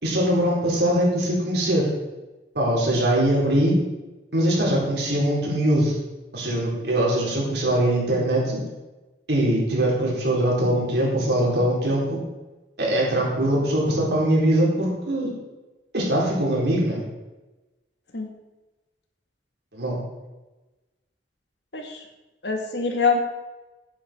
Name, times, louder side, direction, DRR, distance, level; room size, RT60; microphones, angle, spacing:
voice 1, 0.0-1.9 2.5-3.8 4.3-6.0 6.3-8.6 9.3-12.2 12.8-15.3 15.9-17.0 19.7-20.0, right 1 dB, 70° right, -4 dB, 4.1 m, -22 dB
voice 2, 21.7-22.0 22.4-23.2, left 4 dB, 75° left, 3 dB, 2.0 m, -24 dB
10.5 x 10.0 x 4.5 m, 1.1 s
head